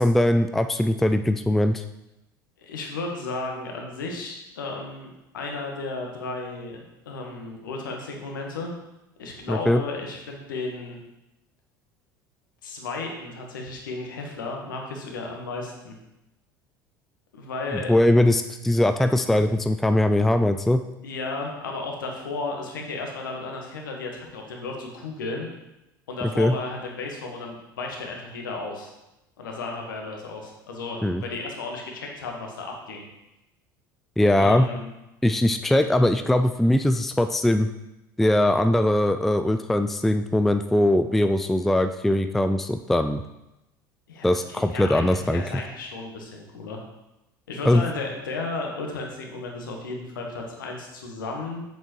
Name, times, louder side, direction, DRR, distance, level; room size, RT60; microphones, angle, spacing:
voice 1, 0.0-1.8 9.5-9.8 17.9-20.8 26.4-26.5 31.0-31.2 34.2-34.7 35.2-37.7 38.2-43.2 44.2-45.4 47.7-47.8, left 1 dB, ahead, 8 dB, 0.3 m, -21 dB
voice 2, 2.6-8.7 9.2-11.0 12.6-15.9 17.3-17.9 19.2-19.5 21.0-25.5 26.1-28.9 29.4-33.0 34.4-34.9 44.1-46.8 47.5-51.6, left 3 dB, 70° left, 1 dB, 1.4 m, -34 dB
7.9 x 7.0 x 3.1 m, 0.94 s
figure-of-eight pair, 65°, 11 cm